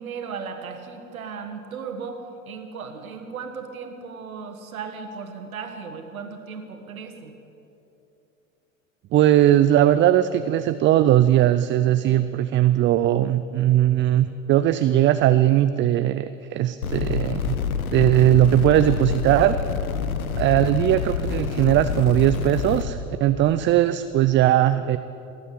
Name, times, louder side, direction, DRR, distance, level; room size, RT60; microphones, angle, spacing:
voice 1, 0.0-7.3, right 5 dB, 80° right, 5 dB, 1.8 m, -36 dB
voice 2, 9.1-17.6 17.9-19.5 20.4-25.0, right 12 dB, 30° right, 12 dB, 0.4 m, -19 dB
sound 1, 16.8-22.8, left 6 dB, 85° left, 1.1 m, -27 dB
19.0 x 8.7 x 8.5 m, 2.9 s
hypercardioid pair, 80°, 41 cm